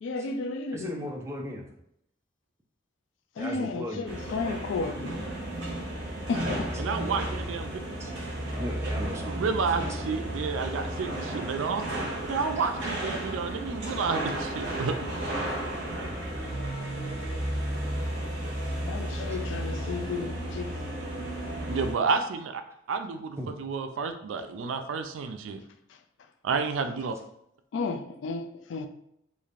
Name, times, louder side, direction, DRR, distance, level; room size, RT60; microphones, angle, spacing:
voice 1, 0.0-1.0 3.4-5.3 6.3-6.8 18.8-21.0 27.7-28.9, left 4 dB, 75° left, 0.3 m, -33 dB
voice 2, 0.7-1.7 3.4-4.1 6.8-7.0 8.0-8.1 8.6-10.0 12.6-12.9 19.3-19.4 23.4-23.6, equal, 15° right, 0.4 m, -37 dB
sound 1, 4.1-21.9, right 1 dB, 65° right, 0.9 m, -33 dB
voice 3, 6.8-7.8 9.2-11.8 12.3-15.1 21.7-22.6 22.9-25.6 26.4-27.1, right 5 dB, 90° right, 0.4 m, -30 dB
3.2 x 2.5 x 2.4 m
head